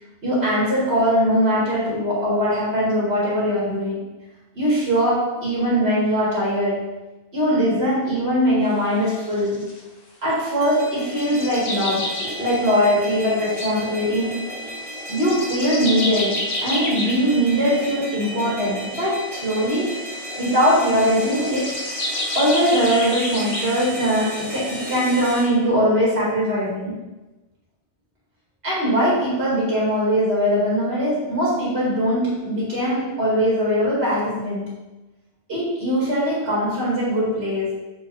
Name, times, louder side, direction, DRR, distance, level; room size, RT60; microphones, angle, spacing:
voice 1, 0.2-4.0 4.5-6.9 7.3-9.7 10.2-14.4 15.1-20.0 20.4-21.8 22.3-26.9 28.6-34.8 35.5-37.8, equal, 80° right, -6 dB, 2.3 m, -21 dB
sound 1, 8.7-9.8 10.3-10.5 11.1-12.7 13.4-17.2 18.7-19.8 20.6-20.8 21.2-23.9 24.5-24.6 24.8-25.0, left 1 dB, 45° left, 0.9 m, -30 dB
sound 2, 10.6-25.4, equal, 30° right, 2.1 m, -34 dB
7.4 x 4.3 x 3.3 m, 1.1 s
omnidirectional pair, 1.0 m